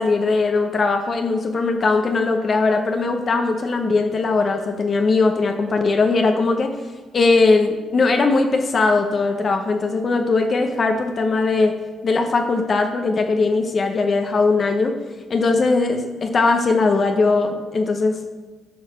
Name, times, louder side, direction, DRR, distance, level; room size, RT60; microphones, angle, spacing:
voice 1, 0.0-6.7 7.1-11.8 12.0-15.0 15.3-18.2, left 3 dB, 45° left, 5 dB, 0.8 m, -19 dB
7.8 x 4.7 x 6.5 m, 1.4 s
cardioid pair, 90°, 0 cm